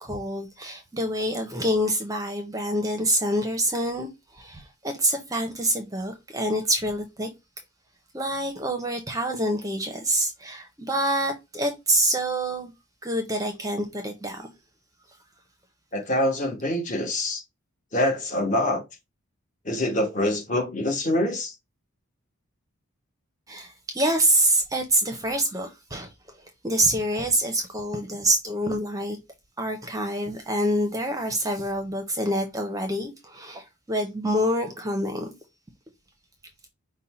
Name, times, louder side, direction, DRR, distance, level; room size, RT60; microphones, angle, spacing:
voice 1, 0.0-7.3 8.1-12.7 13.0-14.5 23.5-26.1 26.6-29.2 29.6-35.3, right 1 dB, 15° right, 0.7 m, -26 dB
voice 2, 15.9-17.4 17.9-18.8 19.6-21.5, left 1 dB, 35° left, 1.2 m, -25 dB
5.4 x 2.2 x 4.2 m
head